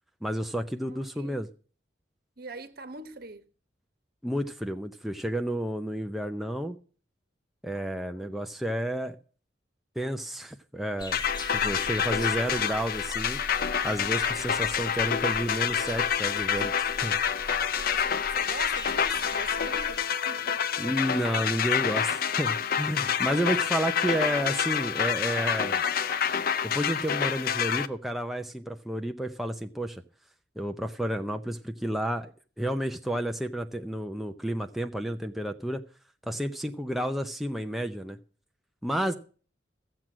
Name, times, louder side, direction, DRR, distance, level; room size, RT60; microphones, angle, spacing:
voice 1, 0.2-1.5 4.2-6.8 7.6-9.2 10.0-11.2 11.5-13.4 13.8-17.2 20.8-25.8 26.7-30.0 30.6-32.3 32.6-35.8 36.3-38.2 38.8-39.2, equal, ahead, 0.6 m, -31 dB
voice 2, 0.8-1.4 2.4-3.4 8.2-8.4 11.7-11.9 17.7-20.6 23.4-24.5 39.0-39.2, right 3 dB, 60° right, 1.2 m, -44 dB
sound 1, 11.0-20.0, left 1 dB, 25° left, 1.0 m, -42 dB
sound 2, 11.1-27.9, left 8 dB, 55° left, 0.6 m, -28 dB
14.0 x 7.6 x 6.0 m
head